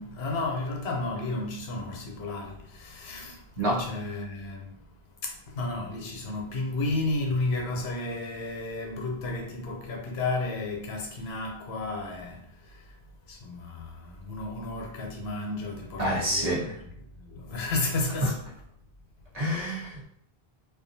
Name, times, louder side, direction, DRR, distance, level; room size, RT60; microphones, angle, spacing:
voice 1, 0.0-4.9 5.2-13.0 13.3-16.5 17.2-18.4, left 2 dB, 85° left, 0.9 m, -32 dB
voice 2, 16.0-16.8 18.2-18.3 19.3-20.1, right 1 dB, 45° right, 0.8 m, -27 dB
2.4 x 2.3 x 2.6 m
omnidirectional pair, 1.0 m